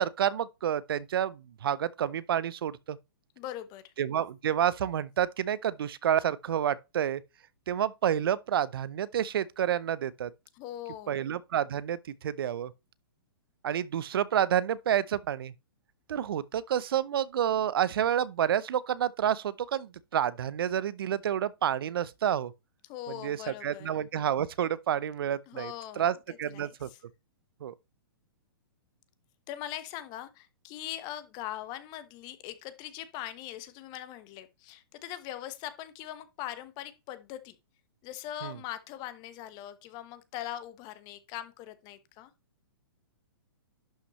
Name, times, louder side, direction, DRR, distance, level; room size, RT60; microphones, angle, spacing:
voice 1, 0.0-3.0 4.0-7.2 7.7-10.3 11.1-12.7 13.6-15.5 16.1-22.5 23.2-26.9 27.6-27.7 38.4-38.5, right 10 dB, 70° right, 0.6 m, -29 dB
voice 2, 3.4-3.9 10.5-11.3 22.8-23.9 25.5-26.1 26.4-27.0 29.5-37.6 38.0-42.3, left 12 dB, 35° left, 1.0 m, -41 dB
11.5 x 5.8 x 3.1 m
hypercardioid pair, 130°, 13 cm